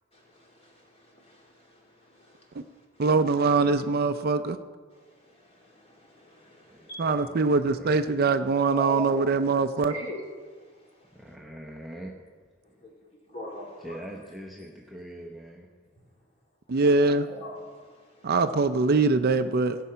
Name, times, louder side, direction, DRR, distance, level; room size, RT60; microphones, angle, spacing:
voice 1, 0.1-3.0 4.9-7.1 8.7-9.3 9.8-11.4 12.6-12.9 13.3-14.0 14.6-14.7 16.7-18.3, left 1 dB, 30° left, -2 dB, 3.0 m, -43 dB
voice 2, 3.0-4.6 7.0-9.9 16.7-17.3 18.2-19.8, right 3 dB, 50° right, 10 dB, 0.5 m, -23 dB
voice 3, 6.7-7.4 7.7-7.9 11.1-12.1 13.8-15.7, right 1 dB, ahead, -2 dB, 0.9 m, -42 dB
16.5 x 7.7 x 5.7 m, 1.5 s
head